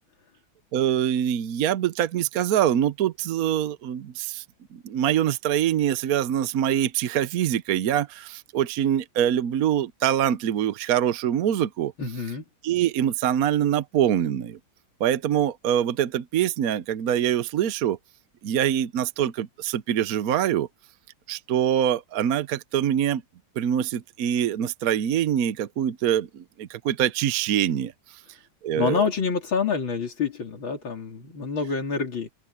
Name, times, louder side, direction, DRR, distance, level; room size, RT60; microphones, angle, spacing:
voice 1, 0.7-4.4 4.7-11.9 12.6-14.6 15.0-18.0 18.4-20.7 21.3-23.2 23.6-27.9 28.6-29.0, right 10 dB, 60° right, 1.1 m, -24 dB
voice 2, 12.0-12.4 28.8-32.3, left 5 dB, 85° left, 3.6 m, -27 dB
open air
omnidirectional pair, 2.1 m